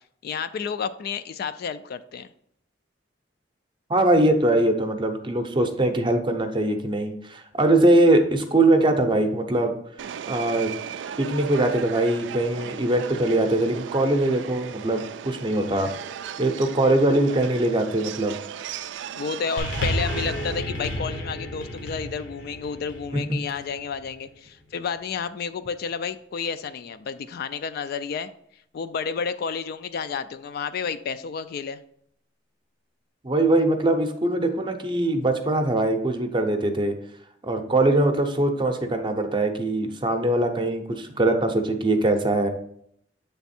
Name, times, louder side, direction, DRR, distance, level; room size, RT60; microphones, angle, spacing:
voice 1, 0.2-2.3 19.1-28.3 28.7-31.8, left 6 dB, 55° left, 12 dB, 0.3 m, -31 dB
voice 2, 3.9-9.7 10.3-10.7 11.2-15.9 16.4-18.4 23.1-23.2 33.2-36.9 37.4-42.5, right 1 dB, 25° right, 6 dB, 0.6 m, -22 dB
Subway metro underground, 10.0-20.6, right 8 dB, 75° right, 0.3 m, -36 dB
sound 1, 19.6-24.1 25.0-25.1, left 1 dB, 85° left, 1.1 m, -32 dB
7.2 x 3.4 x 4.2 m, 0.70 s
head